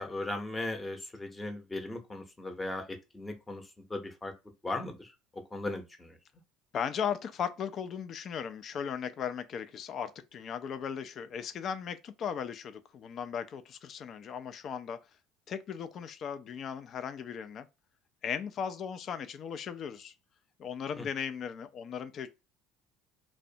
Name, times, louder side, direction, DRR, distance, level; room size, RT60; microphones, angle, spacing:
voice 1, 0.0-3.6 3.9-4.3 4.6-5.1 5.5-6.2 21.0-21.1, left 2 dB, 20° left, 0.7 m, -37 dB
voice 2, 6.7-15.0 15.5-17.7 18.2-20.1 20.6-22.3, left 7 dB, 50° left, 0.3 m, -37 dB
2.4 x 2.1 x 2.6 m
hypercardioid pair, 70°, 0 cm